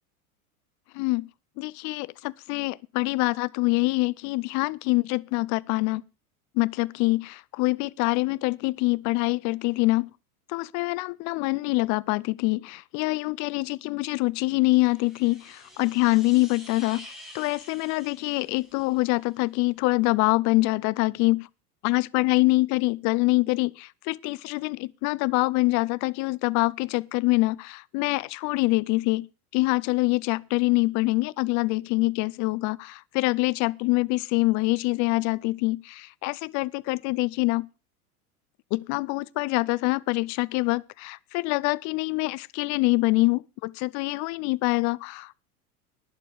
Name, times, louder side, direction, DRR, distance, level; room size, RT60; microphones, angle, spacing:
voice 1, 0.9-1.3 1.6-6.0 6.5-10.1 10.5-17.1 17.3-21.5 21.8-29.3 29.5-37.7 38.7-45.3, left 23 dB, 40° left, 0.6 m, -25 dB
sound 1, 14.6-19.4, left 1 dB, ahead, 7.8 m, -48 dB
11.5 x 10.5 x 5.1 m
hypercardioid pair, 100°, 45 cm